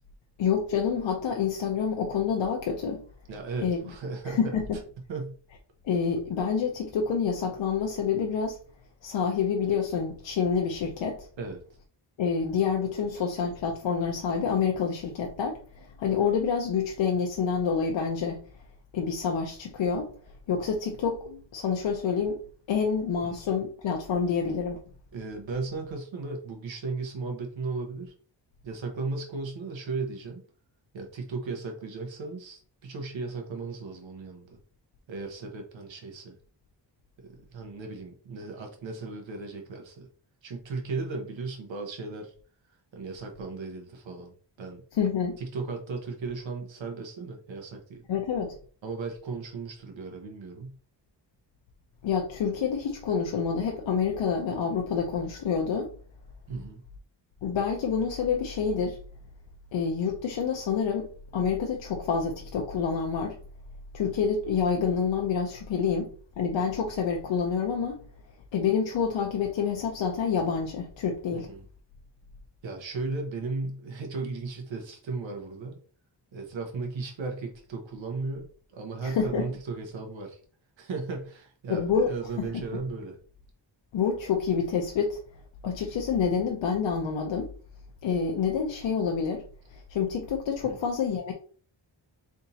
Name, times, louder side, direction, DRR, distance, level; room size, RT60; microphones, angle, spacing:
voice 1, 0.4-3.0 3.6-3.8 4.3-4.7 5.8-8.6 9.0-11.3 12.2-18.4 18.9-20.1 20.5-22.4 22.7-24.8 44.9-45.4 48.1-48.6 52.0-55.9 57.4-59.0 59.7-61.1 61.3-63.4 63.9-66.1 66.4-68.0 68.5-71.5 79.0-79.5 81.7-82.1 82.4-82.6 83.9-85.2 85.6-87.5 88.0-89.4 89.7-91.3, left 6 dB, 90° left, 0.7 m, -27 dB
voice 2, 3.3-4.6 5.1-5.3 11.4-11.6 23.2-23.4 25.1-28.1 28.6-30.4 30.9-34.6 35.1-36.4 37.2-40.1 40.4-42.3 42.9-44.3 44.6-44.8 45.4-48.0 48.8-50.8 56.5-56.8 71.3-71.7 72.6-75.8 76.3-80.4 80.8-83.2 90.6-90.8, right 3 dB, 85° right, 1.0 m, -36 dB
3.9 x 3.5 x 2.8 m
wide cardioid pair, 135°, 44 cm